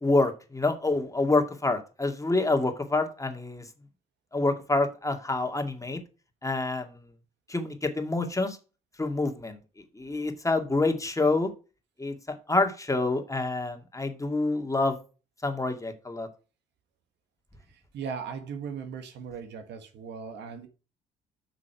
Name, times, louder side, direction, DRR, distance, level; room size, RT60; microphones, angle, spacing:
voice 1, 0.0-3.6 4.3-6.0 6.4-6.9 7.5-8.6 9.0-9.6 10.0-11.5 12.0-15.0 15.4-16.3, left 2 dB, 15° left, 2.1 m, -27 dB
voice 2, 17.9-20.7, right 6 dB, 70° right, 1.4 m, -38 dB
7.7 x 6.1 x 4.7 m
hypercardioid pair, 55°, 19 cm